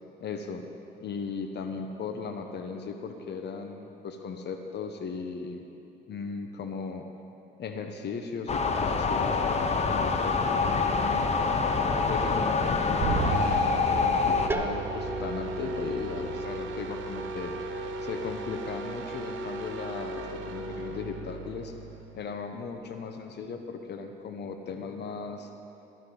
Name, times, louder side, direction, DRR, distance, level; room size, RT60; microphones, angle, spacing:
voice 1, 0.2-0.6 1.0-5.6 6.1-7.0 7.6-11.3 12.1-17.5 18.0-21.7 22.1-25.5, left 5 dB, 60° left, 4 dB, 1.0 m, -37 dB
sound 1, 8.5-14.5, left 4 dB, 35° left, 0.9 m, -26 dB
sound 2, 13.0-22.4, right 3 dB, 75° right, 1.0 m, -35 dB
sound 3, 14.5-20.0, right 2 dB, 10° right, 0.7 m, -42 dB
13.5 x 12.0 x 4.0 m, 2.9 s
cardioid pair, 90°, 20 cm